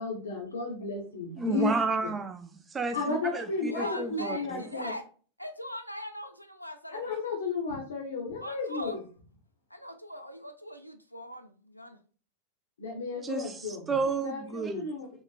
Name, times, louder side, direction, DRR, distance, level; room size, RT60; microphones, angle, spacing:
voice 1, 0.0-1.8 2.9-4.9 6.9-9.0 12.8-13.8 14.2-15.1, left 4 dB, 65° left, 0.7 m, -33 dB
voice 2, 1.4-4.6 13.2-13.5 13.9-14.9, right 4 dB, 15° right, 0.4 m, -31 dB
voice 3, 3.7-5.1 5.4-7.1 8.4-9.0 9.7-12.0, equal, 90° left, 0.3 m, -40 dB
2.9 x 2.4 x 2.2 m
figure-of-eight pair, 90°, 0 cm